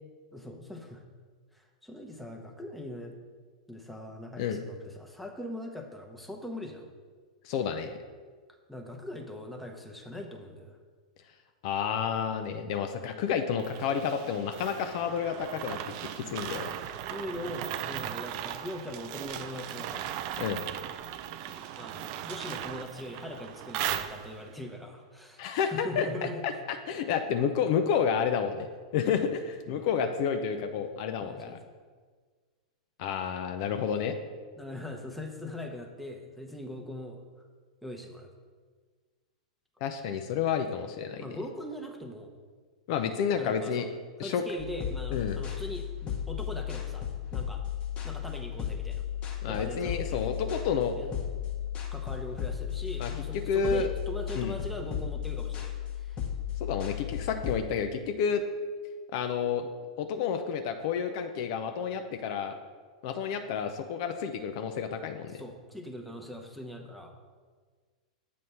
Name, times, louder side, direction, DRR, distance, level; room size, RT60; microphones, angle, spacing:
voice 1, 0.3-1.0 1.5-3.1 3.7-6.9 8.7-10.8 17.1-20.2 21.5-26.4 29.7-29.9 31.2-31.6 34.6-37.2 37.8-38.3 41.2-42.3 43.4-43.9 44.2-47.6 48.0-49.0 49.5-50.3 51.0-51.2 51.9-56.2 65.3-67.2, left 1 dB, ahead, 1 dB, 0.8 m, -41 dB
voice 2, 7.4-8.0 11.6-15.8 16.1-16.7 20.4-20.6 25.4-26.1 26.4-28.7 28.9-31.6 33.0-34.2 39.8-41.2 42.9-43.9 44.2-44.4 45.1-45.4 49.4-50.9 53.0-53.9 54.4-54.5 56.6-58.4 59.1-59.6 60.0-62.6 63.0-65.4, left 7 dB, 50° left, 6 dB, 0.5 m, -30 dB
sound 1, 13.6-24.6, right 11 dB, 50° right, 0.4 m, -38 dB
sound 2, 44.6-57.6, left 9 dB, 30° left, 0.9 m, -35 dB
7.8 x 3.2 x 5.5 m, 1.5 s
hypercardioid pair, 100°, 4 cm